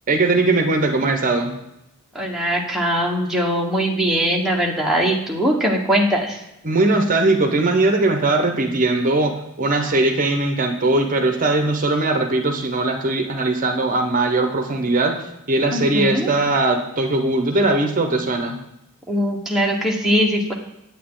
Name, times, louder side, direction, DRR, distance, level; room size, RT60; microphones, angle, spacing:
voice 1, 0.1-1.6 6.6-15.2 15.5-18.6, right 2 dB, 35° right, 5 dB, 0.9 m, -20 dB
voice 2, 2.1-6.4 15.7-16.3 19.1-20.5, equal, ahead, -2 dB, 1.3 m, -21 dB
8.8 x 8.5 x 3.8 m, 0.86 s
head